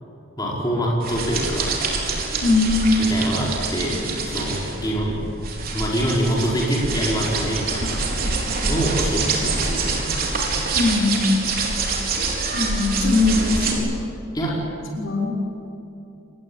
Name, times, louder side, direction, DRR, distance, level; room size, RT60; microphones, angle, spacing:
voice 1, 0.4-1.7 3.0-5.2 5.7-8.0 8.7-10.2 14.3-14.6, equal, 20° left, -4 dB, 5.3 m, -25 dB
sound 1, 1.0-13.7, right 3 dB, 45° right, 4.5 m, -26 dB
voice 2, 2.4-3.1 10.7-11.5 12.5-13.9 14.9-15.3, left 3 dB, 60° left, 1 dB, 6.4 m, -20 dB
28.0 x 21.0 x 9.0 m, 2.7 s
head